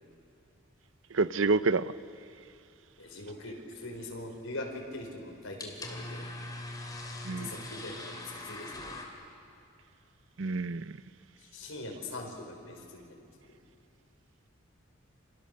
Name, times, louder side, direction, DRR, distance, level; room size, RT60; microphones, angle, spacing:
voice 1, 1.1-1.9 7.2-7.5 10.4-10.9, right 3 dB, 70° right, 0.7 m, -28 dB
voice 2, 3.0-6.3 7.4-9.0 11.4-13.6, left 2 dB, 90° left, 4.8 m, -42 dB
sound 1, 3.8-9.0, left 2 dB, 20° left, 2.9 m, -43 dB
28.5 x 27.0 x 6.8 m
head